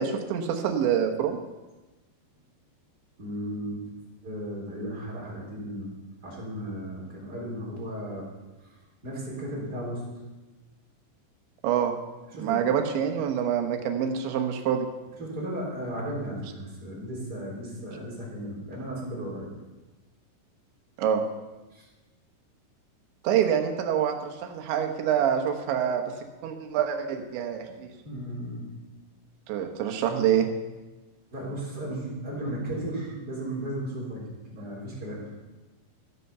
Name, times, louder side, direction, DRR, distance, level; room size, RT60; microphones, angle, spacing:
voice 1, 0.0-1.4 11.6-11.9 12.4-14.9 21.0-21.2 23.2-26.0 26.4-27.9 29.5-30.5, right 8 dB, 90° right, 4 dB, 3.6 m, -26 dB
voice 2, 3.2-3.8 4.2-5.9 6.2-8.3 8.6-8.7 9.0-10.0 12.3-12.6 15.2-19.5 21.7-21.8 28.0-28.6 31.3-35.3, right 1 dB, 25° right, -4 dB, 3.6 m, -35 dB
14.5 x 8.0 x 6.8 m, 1.1 s
omnidirectional pair, 5.0 m